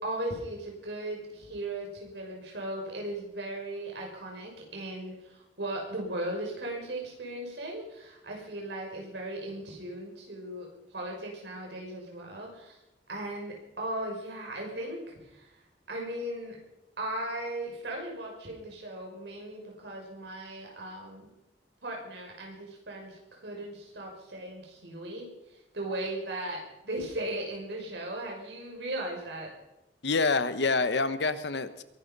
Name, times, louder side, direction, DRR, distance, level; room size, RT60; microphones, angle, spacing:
voice 1, 0.0-10.7 10.9-12.8 13.1-15.0 15.3-15.5 15.9-16.6 17.0-21.3 21.8-25.3 25.7-29.5, right 1 dB, 75° right, 0 dB, 6.1 m, -37 dB
voice 2, 30.0-31.8, left 3 dB, 75° left, 12 dB, 1.1 m, -27 dB
22.5 x 11.5 x 5.4 m, 0.91 s
head